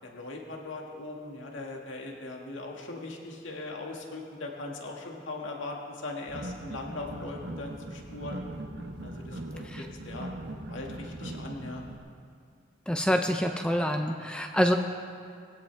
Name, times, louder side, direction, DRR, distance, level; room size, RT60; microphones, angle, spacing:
voice 1, 0.0-8.4 9.0-10.3 10.7-11.8, left 2 dB, 90° left, -1 dB, 2.1 m, -40 dB
sound 1, 6.3-11.9, right 1 dB, 60° right, 1.1 m, -40 dB
voice 2, 12.9-14.8, equal, 5° left, 3 dB, 0.7 m, -26 dB
22.0 x 17.0 x 3.5 m, 2.3 s
head